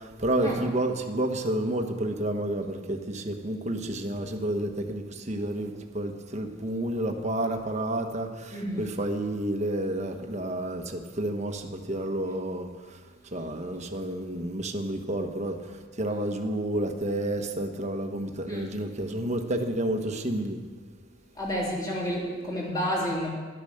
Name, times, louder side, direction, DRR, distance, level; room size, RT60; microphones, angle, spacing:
voice 1, 0.2-12.7 13.3-15.6 16.0-20.6, right 1 dB, 35° right, 4 dB, 1.2 m, -30 dB
voice 2, 8.5-8.9 18.5-18.7 21.3-23.3, equal, 20° left, -3 dB, 3.1 m, -30 dB
12.0 x 11.5 x 6.6 m, 1.4 s
head